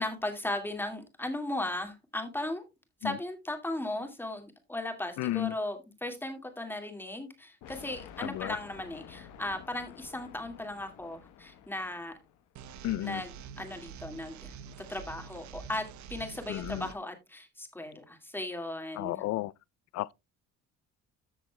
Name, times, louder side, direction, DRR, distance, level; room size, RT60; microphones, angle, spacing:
voice 1, 0.0-2.6 3.0-12.1 13.0-14.5 14.9-15.8 16.1-19.2, left 1 dB, 5° left, 2.1 m, -37 dB
voice 2, 5.2-5.5 8.2-8.6 12.8-13.2 16.5-16.9 19.0-19.5 19.9-20.1, left 16 dB, 60° left, 0.4 m, -32 dB
sound 1, 7.6-12.5, left 9 dB, 85° left, 1.3 m, -51 dB
sound 2, 12.6-16.9, right 6 dB, 70° right, 0.9 m, -46 dB
14.0 x 7.2 x 2.3 m
cardioid pair, 140°, 30 cm